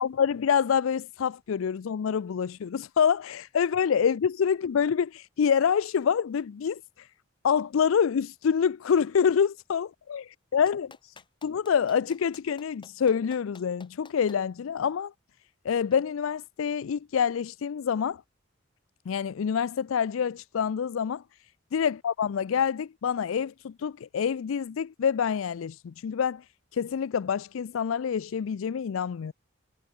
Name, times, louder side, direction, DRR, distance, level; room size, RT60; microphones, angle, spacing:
voice 1, 0.0-7.1 7.4-10.9 11.4-15.1 15.6-18.2 19.1-21.2 21.7-26.4 26.7-29.3, left 7 dB, 80° left, 0.4 m, -26 dB
Clapping, 10.7-14.4 15.9-16.0, left 4 dB, 25° left, 2.1 m, -51 dB
head